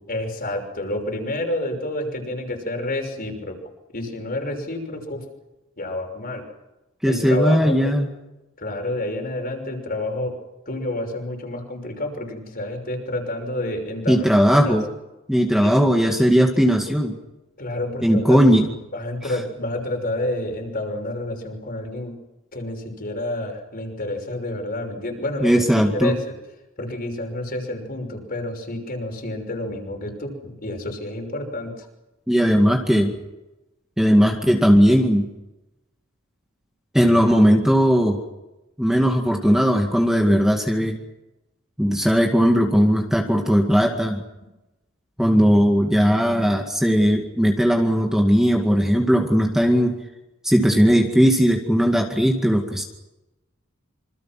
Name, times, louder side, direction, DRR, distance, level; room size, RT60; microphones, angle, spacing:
voice 1, 0.1-3.6 3.9-5.2 5.8-6.4 7.1-7.9 8.6-10.4 10.7-14.8 15.6-15.9 17.6-18.4 18.9-22.2 22.5-26.3 26.8-31.7 40.8-40.9, left 1 dB, 45° left, 3 dB, 6.1 m, -29 dB
voice 2, 7.0-8.1 14.1-14.9 15.3-17.2 18.0-18.7 19.2-19.3 25.4-26.2 32.3-33.1 34.0-35.3 36.9-38.2 38.8-41.0 41.8-44.2 45.2-50.0 50.4-52.8, equal, ahead, 1 dB, 2.2 m, -18 dB
27.0 x 26.0 x 6.1 m, 0.99 s
head